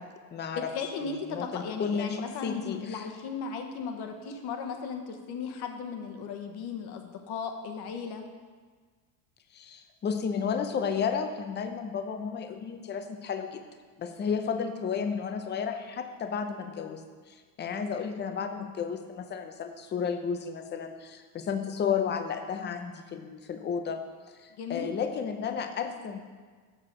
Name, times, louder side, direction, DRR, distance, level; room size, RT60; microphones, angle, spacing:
voice 1, 0.0-0.7 1.0-3.1 9.5-13.6 14.0-24.1 24.4-26.2, left 6 dB, 20° left, 7 dB, 0.6 m, -33 dB
voice 2, 0.5-8.2 14.3-14.5 24.6-24.9, left 5 dB, 50° left, 4 dB, 1.2 m, -36 dB
7.7 x 6.2 x 5.0 m, 1.5 s
supercardioid pair, 120°, 48 cm